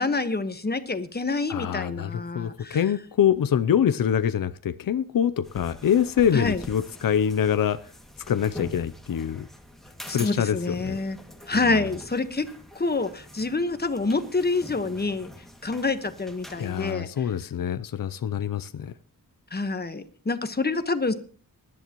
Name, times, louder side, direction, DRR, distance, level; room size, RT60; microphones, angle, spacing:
voice 1, 0.0-2.8 6.3-6.6 10.1-11.2 11.5-12.5 12.7-15.3 15.6-17.2 19.5-21.1, left 3 dB, 25° left, 9 dB, 1.3 m, -27 dB
voice 2, 1.5-7.8 8.3-9.5 10.1-11.0 16.6-18.9, left 9 dB, 70° left, 12 dB, 0.6 m, -25 dB
sound 1, 5.4-16.9, equal, ahead, 2.1 m, -45 dB
21.0 x 11.0 x 3.0 m, 0.42 s
wide cardioid pair, 105°, 35 cm